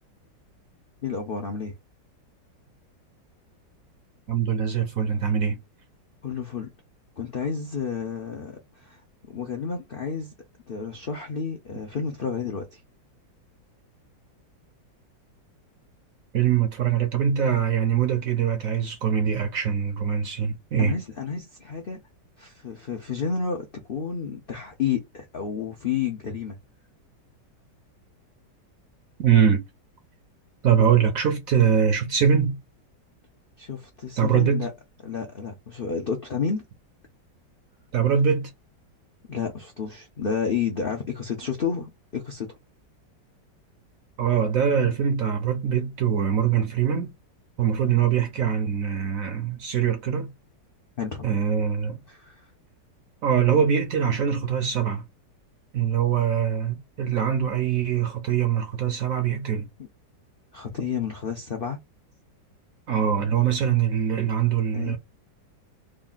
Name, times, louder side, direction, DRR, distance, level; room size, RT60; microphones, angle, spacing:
voice 1, 1.0-1.7 6.2-6.7 7.2-9.0 9.3-10.3 10.7-12.8 20.8-22.0 22.4-26.6 33.6-34.7 35.0-36.6 39.3-42.5 51.0-51.3 52.1-52.5 59.8-59.9 60.5-61.8 64.7-65.0, left 6 dB, 75° left, 0.5 m, -30 dB
voice 2, 4.3-5.6 16.3-21.0 29.2-29.6 30.6-32.6 34.2-34.7 37.9-38.5 44.2-47.1 47.6-50.3 51.2-52.0 53.2-55.0 55.7-59.7 62.9-65.0, right 8 dB, 65° right, 0.9 m, -23 dB
3.3 x 2.4 x 3.8 m
omnidirectional pair, 2.0 m